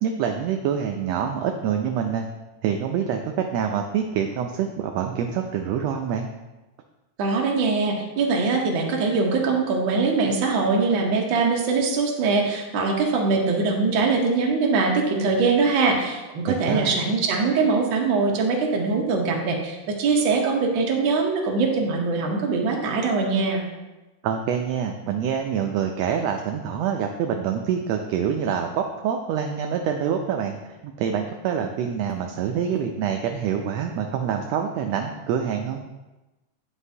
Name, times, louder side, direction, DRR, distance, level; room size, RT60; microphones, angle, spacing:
voice 1, 0.0-2.2 2.6-6.3 16.4-16.9 24.2-35.8, right 8 dB, 85° right, 4 dB, 1.5 m, -26 dB
voice 2, 7.2-23.6, right 4 dB, 65° right, 0 dB, 1.2 m, -22 dB
9.8 x 5.3 x 2.7 m, 1.1 s
omnidirectional pair, 3.4 m